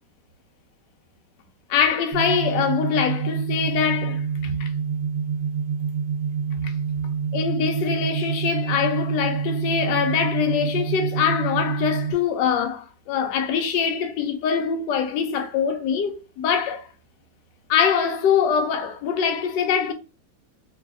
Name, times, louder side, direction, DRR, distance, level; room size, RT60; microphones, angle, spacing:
voice 1, 1.7-4.7 6.6-6.7 7.3-16.9 17.7-19.9, left 7 dB, 75° left, 1.2 m, -23 dB
sound 1, 2.1-12.1, right 6 dB, 75° right, 1.3 m, -27 dB
3.2 x 2.6 x 2.4 m
omnidirectional pair, 2.1 m